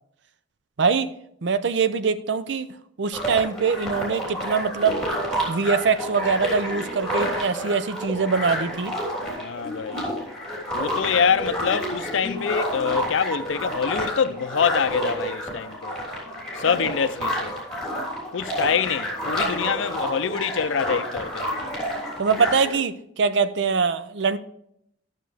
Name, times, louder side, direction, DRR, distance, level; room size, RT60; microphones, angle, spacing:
voice 1, 0.8-1.1 1.4-2.7 3.0-5.0 5.5-9.0 22.2-24.4, right 5 dB, 70° right, 0.5 m, -23 dB
sound 1, 3.1-22.8, equal, 5° left, 3.2 m, -29 dB
voice 2, 9.4-10.1 10.7-16.0 16.6-17.5 18.3-21.5, left 6 dB, 85° left, 0.5 m, -25 dB
12.0 x 6.5 x 3.3 m
head